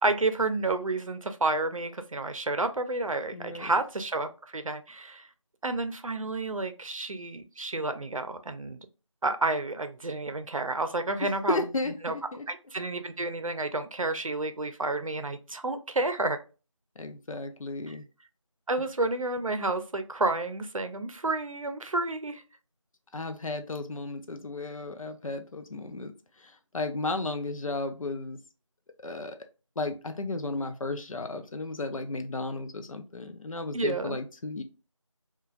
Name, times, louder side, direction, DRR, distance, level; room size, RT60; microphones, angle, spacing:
voice 1, 0.0-5.3 5.6-8.8 9.2-11.6 12.0-12.2 12.5-16.4 17.9-18.0 18.7-22.4 33.7-34.2, right 2 dB, 85° right, 9 dB, 0.5 m, -30 dB
voice 2, 3.3-3.7 11.5-12.4 17.0-18.0 23.1-26.1 26.4-28.4 29.0-29.4 29.8-34.6, left 2 dB, 85° left, 7 dB, 0.5 m, -34 dB
3.0 x 2.3 x 2.4 m, 0.33 s
figure-of-eight pair, 170°, 17 cm